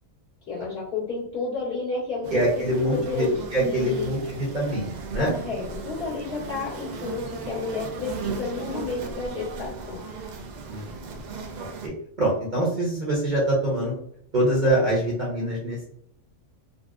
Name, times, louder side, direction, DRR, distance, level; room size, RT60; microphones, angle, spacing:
voice 1, 0.5-3.3 3.6-4.1 5.1-10.1, left 4 dB, 50° left, -8 dB, 2.0 m, -31 dB
sound 1, 2.2-11.9, right 4 dB, 70° right, 0.4 m, -36 dB
voice 2, 2.3-5.3 10.7-11.3 11.8-11.9 12.2-13.9 14.3-15.8, right 1 dB, 40° right, -4 dB, 0.9 m, -24 dB
3.9 x 2.1 x 2.3 m, 0.69 s
omnidirectional pair, 1.3 m